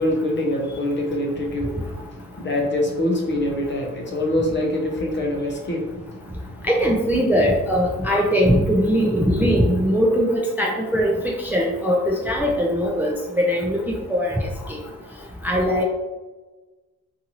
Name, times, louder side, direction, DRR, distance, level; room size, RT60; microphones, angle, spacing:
voice 1, 0.0-6.7, left 1 dB, 40° left, 0 dB, 0.7 m, -25 dB
voice 2, 6.7-11.1 11.5-13.8 14.1-14.3 15.4-15.8, equal, 5° right, -2 dB, 0.4 m, -20 dB
2.6 x 2.5 x 2.8 m, 1.2 s
cardioid pair, 90°, 30 cm